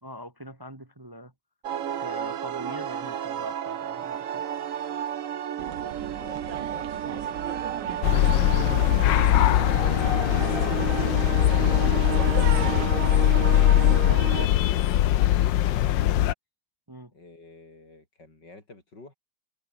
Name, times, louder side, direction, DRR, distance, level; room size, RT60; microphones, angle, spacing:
voice 1, 0.0-1.3 2.0-4.4 16.9-17.1, equal, 15° right, 1.4 m, -42 dB
sound 1, 1.6-14.5, right 9 dB, 55° right, 1.1 m, -33 dB
sound 2, 5.6-12.9, right 10 dB, 75° right, 1.7 m, -38 dB
voice 2, 6.2-10.8 11.5-16.3 17.1-19.1, left 2 dB, 70° left, 6.5 m, -49 dB
sound 3, 8.0-16.3, left 12 dB, 90° left, 1.5 m, -21 dB
omnidirectional pair, 2.0 m